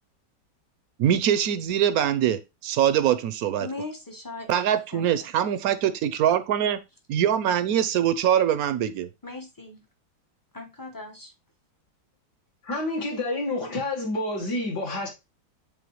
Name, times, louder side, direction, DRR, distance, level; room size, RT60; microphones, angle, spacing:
voice 1, 1.0-3.7 4.5-6.8 7.1-9.1, right 10 dB, 70° right, 0.9 m, -23 dB
voice 2, 3.6-5.3 9.2-9.9 10.5-11.3, left 2 dB, 20° left, 0.5 m, -39 dB
voice 3, 12.6-15.1, left 2 dB, 65° left, 2.1 m, -28 dB
8.6 x 3.8 x 3.1 m
omnidirectional pair, 1.9 m